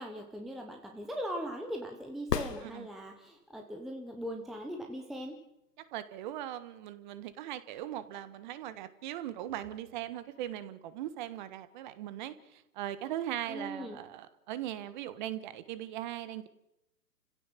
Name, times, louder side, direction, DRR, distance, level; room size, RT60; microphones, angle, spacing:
voice 1, 0.0-5.4 13.5-14.0, equal, ahead, 3 dB, 0.8 m, -40 dB
sound 1, 2.2-3.4 7.3-7.4, left 6 dB, 75° left, 1.9 m, -35 dB
voice 2, 5.9-16.5, right 12 dB, 30° right, 14 dB, 1.5 m, -39 dB
30.0 x 16.0 x 7.6 m, 0.87 s
hypercardioid pair, 140°, 49 cm